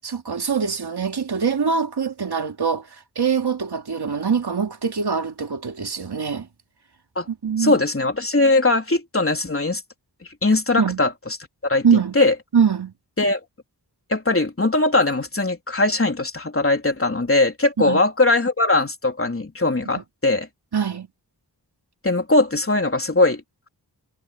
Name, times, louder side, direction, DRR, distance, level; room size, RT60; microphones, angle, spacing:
voice 1, 0.0-2.9 3.2-6.5 7.3-7.8 10.8-11.0 11.8-12.2 12.5-12.9 17.8-18.0 19.9-20.0 20.7-21.1, right 6 dB, 80° right, 2.8 m, -23 dB
voice 2, 7.6-9.8 10.4-11.1 11.6-11.9 12.2-12.3 13.2-13.4 14.1-20.5 22.0-23.4, left 2 dB, 35° left, 3.6 m, -20 dB
wide cardioid pair, 90°, 39 cm